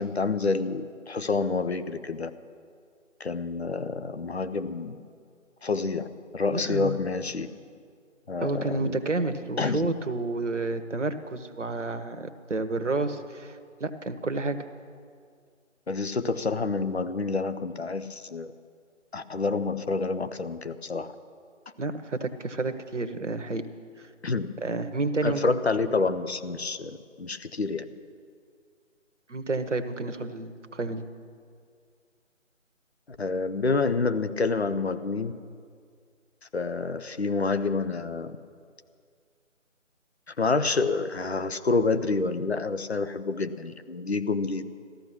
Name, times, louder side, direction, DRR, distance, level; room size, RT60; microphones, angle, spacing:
voice 1, 0.0-2.3 3.2-5.0 5.6-6.1 6.3-7.5 8.3-9.0 9.6-9.9 15.9-18.5 19.1-21.1 24.2-24.5 25.2-27.9 33.2-35.3 36.5-38.4 40.3-44.7, left 3 dB, 55° left, 10 dB, 0.8 m, -28 dB
voice 2, 6.5-7.0 8.4-14.6 21.8-23.6 24.0-24.1 24.6-25.6 29.3-31.0, right 3 dB, 65° right, 8 dB, 1.2 m, -30 dB
14.0 x 13.5 x 6.1 m, 2.1 s
figure-of-eight pair, 155°, 39 cm